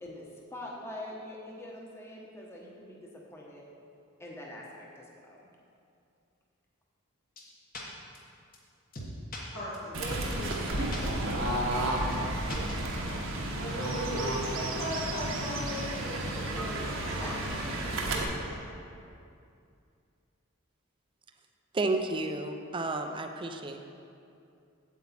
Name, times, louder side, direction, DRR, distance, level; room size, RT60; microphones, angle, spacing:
voice 1, 0.5-3.6 4.2-5.5 17.1-18.0, left 1 dB, 10° left, -3 dB, 1.1 m, -44 dB
sound 1, 7.4-7.5 7.7-7.8 8.1-8.2 8.5-8.6 8.9-9.4 9.7-9.8 10.1-10.2 10.5-10.6 10.9-11.0 11.3-11.4 11.7-11.8 12.1-12.2 12.5-13.1, left 1 dB, 40° left, 1.3 m, -40 dB
voice 2, 9.5-17.3 17.6-18.5, equal, 90° left, -11 dB, 1.9 m, -39 dB
Fowl / Bird, 9.9-18.2, right 1 dB, 65° right, 1.1 m, -32 dB
voice 3, 21.7-23.9, right 2 dB, 25° right, 5 dB, 0.5 m, -32 dB
8.3 x 8.3 x 4.2 m, 2.5 s
head